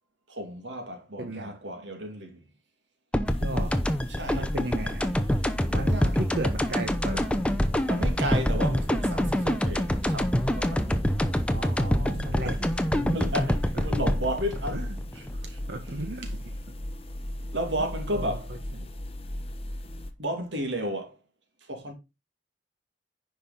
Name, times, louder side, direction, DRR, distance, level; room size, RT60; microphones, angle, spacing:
voice 1, 0.3-2.4 4.1-4.5 5.5-6.2 7.9-11.1 12.4-12.6 13.1-14.8 15.2-15.6 17.5-18.5 20.2-21.2 21.6-21.9, right 1 dB, 85° right, 2.6 m, -33 dB
voice 2, 1.2-1.6 3.4-3.8 4.3-5.1 5.8-7.4 11.5-13.2 13.7-13.8 14.7-14.9 15.7-16.5 18.1-18.9, right 2 dB, 60° right, 1.2 m, -36 dB
sound 1, 3.1-15.9, equal, 5° left, 0.8 m, -26 dB
sound 2, 3.3-20.1, left 1 dB, 35° left, 1.1 m, -36 dB
10.0 x 5.5 x 4.0 m
head